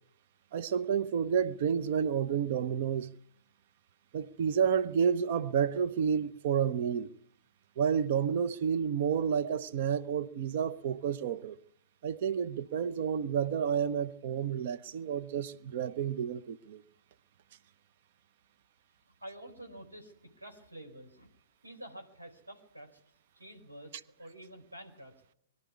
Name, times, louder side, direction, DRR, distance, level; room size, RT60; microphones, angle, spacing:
voice 1, 0.5-3.1 4.1-7.1 7.8-11.6 12.0-16.8, right 7 dB, 45° right, 0.9 m, -30 dB
voice 2, 19.2-21.3 21.6-23.0 23.3-25.1, right 1 dB, 85° right, 4.6 m, -49 dB
22.5 x 12.0 x 9.8 m
figure-of-eight pair, 115°, 0 cm